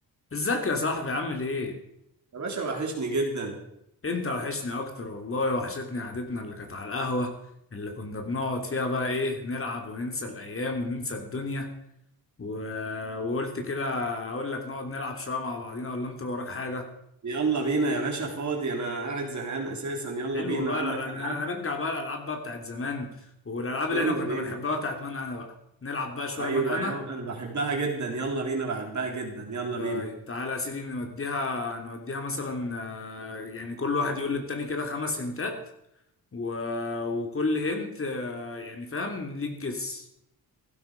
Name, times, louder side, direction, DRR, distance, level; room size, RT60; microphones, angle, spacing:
voice 1, 0.3-1.8 4.0-7.3 7.7-11.7 12.4-16.9 20.3-23.1 23.4-25.5 25.8-26.9 29.8-35.6 36.3-40.0, left 3 dB, 35° left, 4 dB, 2.9 m, -31 dB
voice 2, 2.3-3.6 17.2-21.5 23.9-24.6 26.4-30.1, right 3 dB, 50° right, 1 dB, 4.0 m, -30 dB
15.5 x 12.0 x 5.2 m, 0.79 s
cardioid pair, 90°, 37 cm